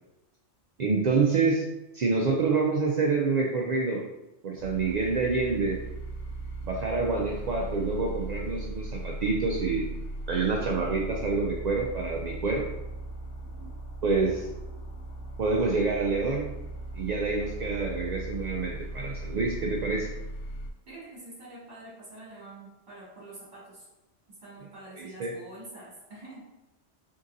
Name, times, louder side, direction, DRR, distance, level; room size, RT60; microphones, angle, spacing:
voice 1, 0.8-1.6 1.9-4.0 4.4-5.8 6.6-9.8 10.3-12.6 14.0-14.5 15.4-16.5 16.9-20.1 25.0-25.3, right 4 dB, 70° right, -1 dB, 0.4 m, -27 dB
sound 1, 4.6-20.7, right 2 dB, 75° left, 0.9 m, -38 dB
voice 2, 20.9-23.9 24.4-26.4, right 1 dB, 40° right, -8 dB, 1.8 m, -46 dB
3.8 x 3.7 x 2.6 m, 0.96 s
omnidirectional pair, 1.2 m